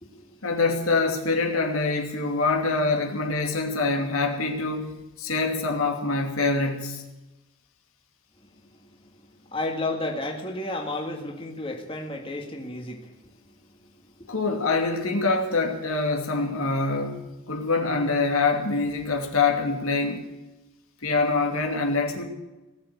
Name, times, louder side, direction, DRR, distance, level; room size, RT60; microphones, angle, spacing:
voice 1, 0.4-7.0 14.3-17.2 17.5-20.2 21.0-22.2, left 3 dB, 90° left, 3 dB, 2.8 m, -25 dB
voice 2, 8.7-13.1 14.2-14.4, left 2 dB, 25° left, 2 dB, 1.9 m, -33 dB
18.0 x 7.9 x 9.6 m, 1.1 s
head